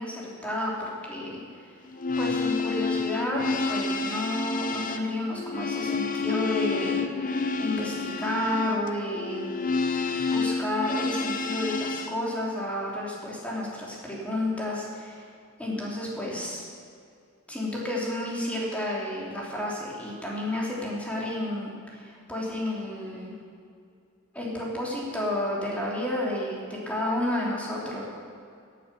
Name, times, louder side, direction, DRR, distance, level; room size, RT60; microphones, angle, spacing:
voice 1, 0.0-1.7 2.2-3.4 3.7-7.1 7.6-9.4 10.3-14.9 15.6-16.6 17.5-23.3 24.3-28.0, left 1 dB, 5° left, -4 dB, 3.2 m, -31 dB
sound 1, 1.9-12.1, left 4 dB, 40° left, 0.9 m, -29 dB
17.0 x 9.2 x 6.9 m, 2.3 s
head